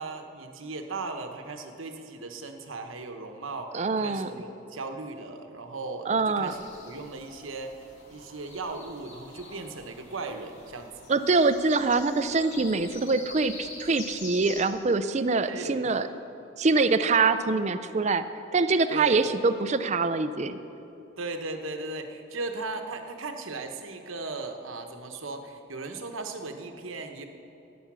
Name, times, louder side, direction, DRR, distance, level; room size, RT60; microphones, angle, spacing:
voice 1, 0.0-6.6 6.8-7.7 8.1-11.1 15.4-15.9 18.9-19.3 21.2-27.2, right 3 dB, 90° right, 5 dB, 1.1 m, -37 dB
voice 2, 3.7-4.3 6.1-6.5 11.1-16.1 16.6-18.2 18.5-20.6, right 3 dB, 35° right, 11 dB, 0.5 m, -24 dB
sound 1, 6.5-14.7, left 3 dB, 70° left, 2.5 m, -46 dB
14.5 x 9.3 x 6.2 m, 2.9 s
head